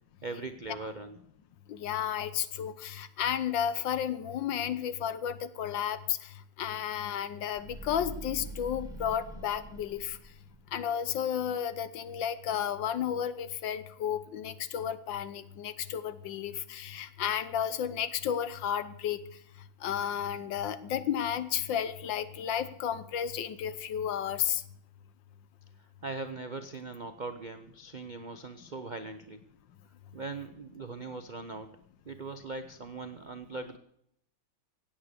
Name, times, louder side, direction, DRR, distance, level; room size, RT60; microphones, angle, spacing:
voice 1, 0.2-1.2 26.0-29.4 30.1-31.7 32.1-33.8, right 3 dB, 60° right, 8 dB, 0.4 m, -40 dB
voice 2, 1.7-10.2 10.7-19.2 19.8-24.6, left 9 dB, 75° left, 14 dB, 1.6 m, -32 dB
sound 1, 7.5-10.8, right 1 dB, ahead, 2.2 m, -44 dB
16.5 x 8.9 x 6.6 m, 0.71 s
omnidirectional pair, 2.1 m